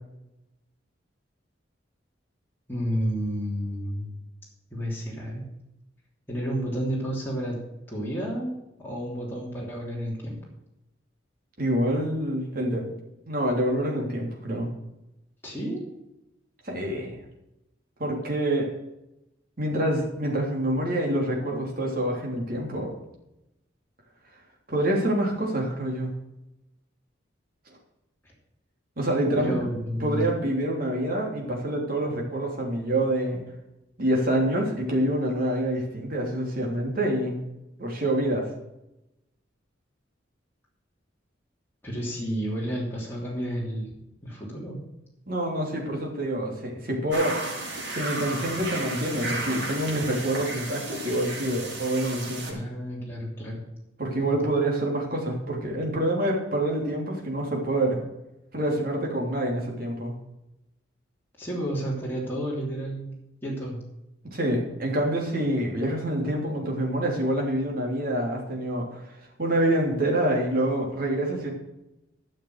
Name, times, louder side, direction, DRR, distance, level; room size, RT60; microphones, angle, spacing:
voice 1, 2.7-4.2 4.7-5.4 6.3-7.6 7.9-8.5 8.8-10.4 15.4-15.8 29.4-30.3 41.8-43.9 44.2-44.8 52.5-53.6 54.1-54.3 61.4-63.1 63.4-63.8, equal, 10° left, -5 dB, 3.2 m, -31 dB
voice 2, 11.6-12.8 13.3-14.7 16.6-17.2 18.0-18.7 19.6-22.9 24.7-26.1 29.0-29.6 30.0-33.4 34.0-37.4 37.8-38.5 45.3-47.4 47.9-52.6 54.0-58.0 58.5-60.1 64.3-69.0 69.4-71.5, right 1 dB, 50° right, -1 dB, 3.2 m, -26 dB
sound 1, 47.1-52.5, right 2 dB, 75° right, 3.9 m, -34 dB
12.5 x 6.6 x 6.5 m, 0.91 s
head